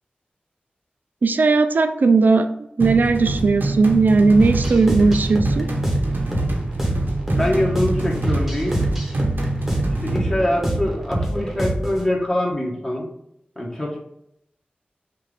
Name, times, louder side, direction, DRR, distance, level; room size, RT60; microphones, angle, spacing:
voice 1, 1.2-2.5 2.8-5.7, right 4 dB, 65° right, 8 dB, 0.4 m, -17 dB
sound 1, 2.8-10.2, right 2 dB, 85° right, 0.9 m, -26 dB
sound 2, 4.4-12.1, right 1 dB, 5° right, 1.1 m, -25 dB
voice 2, 7.3-8.9 10.0-13.1 13.5-14.0, left 1 dB, 20° left, -3 dB, 1.3 m, -24 dB
5.7 x 2.6 x 3.3 m, 0.77 s
wide cardioid pair, 85°, 3 cm